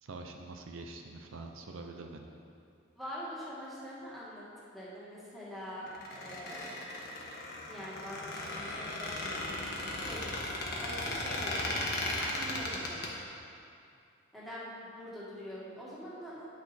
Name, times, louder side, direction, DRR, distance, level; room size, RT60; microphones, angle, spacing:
voice 1, 0.0-2.2, right 3 dB, 75° right, 3 dB, 0.6 m, -45 dB
voice 2, 3.0-4.5 4.7-6.7 7.7-10.2 10.8-13.1 14.3-16.5, equal, ahead, -8 dB, 1.7 m, -44 dB
Squeak, 5.9-13.1, left 1 dB, 50° left, 1.2 m, -36 dB
9.5 x 6.2 x 4.3 m, 2.4 s
head